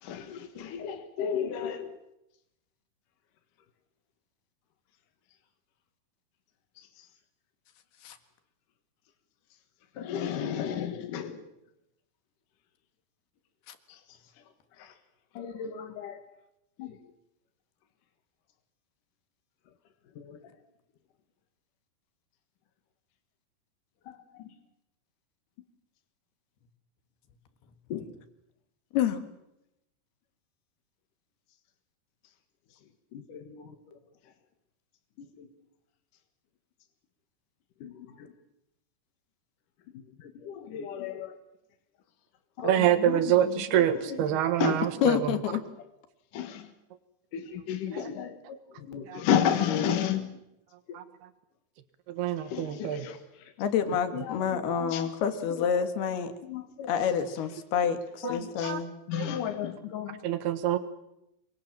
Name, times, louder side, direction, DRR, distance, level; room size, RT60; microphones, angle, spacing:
voice 1, 0.0-2.0 6.8-7.1 10.0-11.5 13.9-14.4 14.8-14.9 15.3-16.2 16.8-17.1 20.2-20.5 24.1-24.5 27.9-28.1 33.1-34.0 35.2-35.5 37.8-38.3 39.9-41.3 42.6-44.2 44.6-44.8 45.6-45.7 46.3-46.7 47.3-50.4 50.9-51.0 52.4-53.5 54.1-55.1 55.6-55.8 56.4-56.9 58.2-58.7 59.1-60.3, left 8 dB, 60° left, 6 dB, 2.9 m, -33 dB
voice 2, 42.6-45.4 47.9-48.0 49.0-49.2 50.9-51.0 52.1-53.1 58.2-58.3 58.6-58.8 59.1-59.3 60.2-60.8, right 11 dB, 80° right, 11 dB, 3.5 m, -26 dB
voice 3, 45.0-45.6 53.6-56.3 56.9-58.9, left 8 dB, 80° left, 8 dB, 3.8 m, -28 dB
26.0 x 23.5 x 7.5 m, 0.86 s
omnidirectional pair, 4.5 m